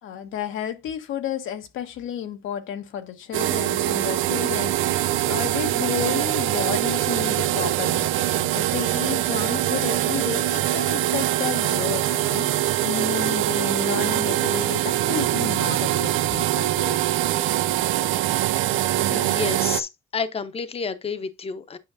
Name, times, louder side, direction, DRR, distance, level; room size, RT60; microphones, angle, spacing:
voice 1, 0.0-17.0, left 9 dB, 85° left, 1.2 m, -32 dB
sound 1, 3.3-19.8, right 14 dB, 80° right, 0.4 m, -23 dB
voice 2, 19.1-21.8, left 5 dB, 30° left, 0.8 m, -30 dB
8.9 x 5.2 x 2.6 m
cardioid pair, 90°, 20 cm